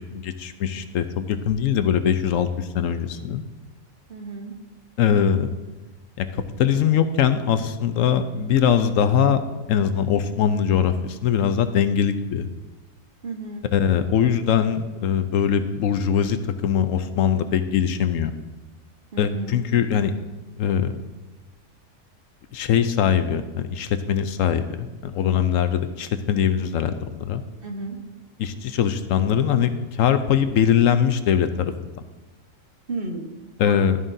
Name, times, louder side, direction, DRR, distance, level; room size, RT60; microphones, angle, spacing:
voice 1, 0.1-3.4 5.0-5.5 6.2-6.3 6.6-12.5 13.7-18.3 19.2-20.1 20.6-21.0 22.5-27.4 28.4-31.7 33.6-34.0, left 8 dB, 75° left, 10 dB, 1.0 m, -22 dB
voice 2, 4.1-4.5 13.2-13.7 19.1-19.6 27.6-28.0 32.9-33.3 33.6-33.9, right 2 dB, 45° right, 2 dB, 1.3 m, -32 dB
12.5 x 11.0 x 2.7 m, 1.2 s
omnidirectional pair, 1.4 m